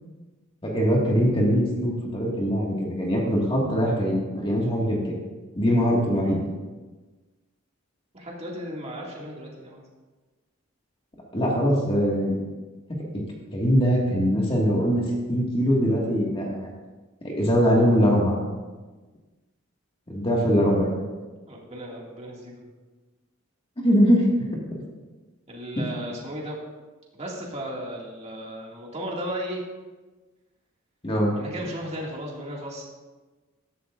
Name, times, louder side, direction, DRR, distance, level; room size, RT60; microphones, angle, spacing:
voice 1, 0.6-5.2 5.6-6.4 11.3-12.5 12.9-13.0 13.5-16.7 17.2-18.4 20.1-20.9 23.8-24.8 31.0-31.3, equal, 25° left, -3 dB, 1.9 m, -22 dB
voice 2, 8.1-9.8 21.5-22.7 25.5-26.6 27.1-29.6 31.3-32.8, equal, 30° right, -3 dB, 2.2 m, -35 dB
14.5 x 12.0 x 2.5 m, 1.3 s
head